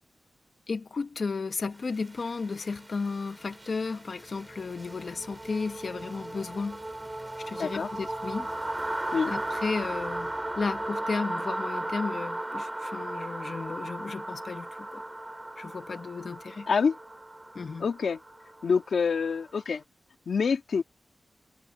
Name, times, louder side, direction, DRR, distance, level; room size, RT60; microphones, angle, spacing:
voice 1, 0.7-6.8 7.5-8.5 9.3-15.0 15.6-16.7 17.5-17.8, left 4 dB, 65° left, 1.5 m, -34 dB
sound 1, 1.8-19.6, right 1 dB, 20° right, 7.2 m, -37 dB
voice 2, 7.6-7.9 9.1-9.4 16.7-17.0 17.8-18.2 18.6-19.8 20.3-20.8, left 5 dB, 80° left, 2.8 m, -26 dB
cardioid pair, 70°, 0 cm